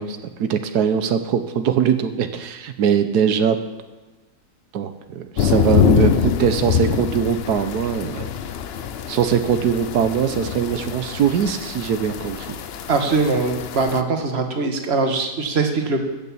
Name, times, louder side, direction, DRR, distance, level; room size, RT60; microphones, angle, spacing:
voice 1, 0.0-3.6 4.7-8.3 9.1-12.6, right 8 dB, 90° right, 9 dB, 1.4 m, -21 dB
sound 1, 5.4-14.0, left 8 dB, 60° left, 0.7 m, -24 dB
voice 2, 12.9-16.0, right 3 dB, 40° right, 4 dB, 1.7 m, -21 dB
14.0 x 6.8 x 8.5 m, 1.2 s
omnidirectional pair, 1.7 m